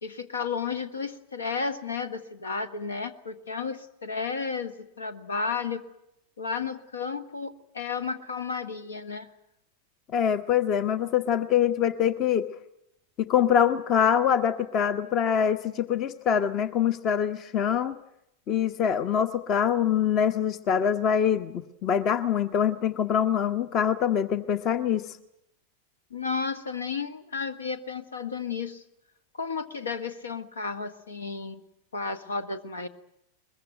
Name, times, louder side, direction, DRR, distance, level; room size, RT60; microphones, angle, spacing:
voice 1, 0.0-5.8 6.4-9.3 26.1-28.8 29.3-31.6 31.9-32.9, left 5 dB, 70° left, 11 dB, 1.7 m, -33 dB
voice 2, 10.1-12.5 13.2-18.0 18.5-25.0, left 8 dB, 35° left, 13 dB, 1.1 m, -24 dB
22.5 x 22.0 x 9.1 m, 0.80 s
figure-of-eight pair, 90°, 0 cm